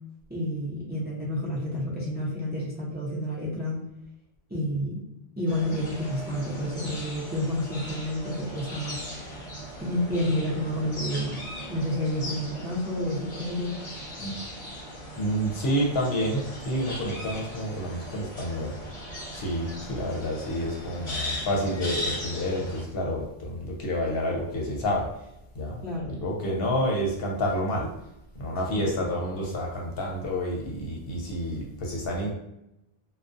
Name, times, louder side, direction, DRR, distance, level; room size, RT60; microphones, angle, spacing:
voice 1, 0.3-3.8 4.5-5.0 5.4-9.1 9.8-11.4 11.7-13.7 25.8-26.1 28.7-29.1, left 1 dB, 15° right, -7 dB, 0.5 m, -30 dB
sound 1, 5.5-22.8, equal, 40° left, 0.9 m, -38 dB
voice 2, 15.2-18.7 19.3-25.1 25.6-25.8 26.1-27.9 28.4-32.3, equal, 70° left, -1 dB, 0.8 m, -29 dB
2.4 x 2.1 x 2.4 m, 0.86 s
omnidirectional pair, 1.1 m